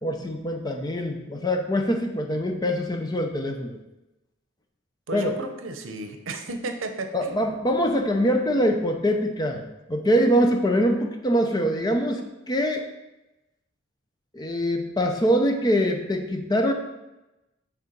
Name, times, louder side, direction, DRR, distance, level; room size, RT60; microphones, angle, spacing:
voice 1, 0.0-3.8 5.1-5.3 7.1-12.8 14.3-16.7, equal, 20° left, 4 dB, 0.6 m, -24 dB
voice 2, 5.1-7.6, right 2 dB, 75° right, 6 dB, 0.7 m, -33 dB
6.7 x 3.6 x 5.1 m, 0.99 s
head